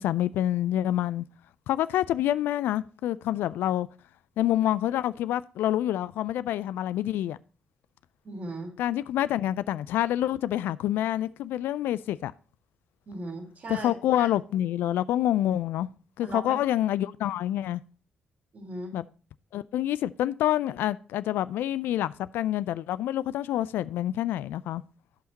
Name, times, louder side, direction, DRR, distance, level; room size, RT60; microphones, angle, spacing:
voice 1, 0.0-1.2 1.7-3.9 4.4-7.4 8.8-12.3 13.7-15.9 16.2-17.8 18.9-19.0 19.5-24.8, left 12 dB, 70° left, 0.3 m, -27 dB
voice 2, 8.2-8.7 13.1-13.9 14.2-14.3 16.2-16.6 18.5-19.0, right 2 dB, 55° right, 3.5 m, -37 dB
16.0 x 5.6 x 2.8 m
hypercardioid pair, 40°, 4 cm